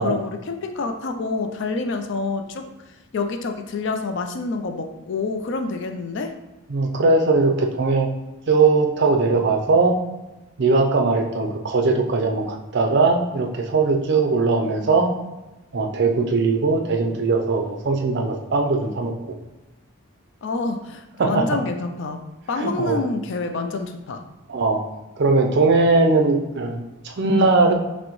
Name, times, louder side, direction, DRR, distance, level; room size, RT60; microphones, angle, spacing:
voice 1, 0.0-2.7 3.1-6.3 20.4-22.2 22.5-24.2, left 3 dB, 55° left, 6 dB, 0.4 m, -27 dB
voice 2, 6.7-8.1 8.5-10.0 10.6-15.1 15.7-19.1 21.2-21.4 22.6-23.0 24.5-24.8 25.2-27.7, right 3 dB, 50° right, 2 dB, 0.5 m, -20 dB
6.0 x 2.1 x 3.0 m, 1.1 s
head